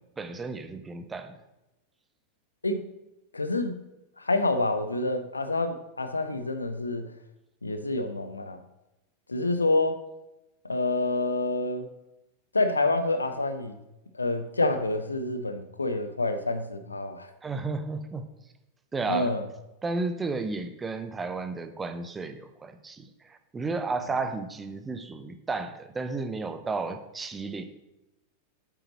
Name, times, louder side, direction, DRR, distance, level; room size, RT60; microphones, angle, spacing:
voice 1, 0.2-1.4 17.4-18.3 18.9-19.4 19.8-27.6, right 3 dB, 15° right, 8 dB, 0.7 m, -33 dB
voice 2, 3.3-3.8 4.2-7.1 7.6-8.6 9.3-10.0 10.6-11.9 12.5-13.8 14.1-17.3 19.1-19.4, left 2 dB, 80° left, 9 dB, 0.6 m, -27 dB
8.5 x 7.8 x 3.0 m, 0.95 s
figure-of-eight pair, 90°, 0 cm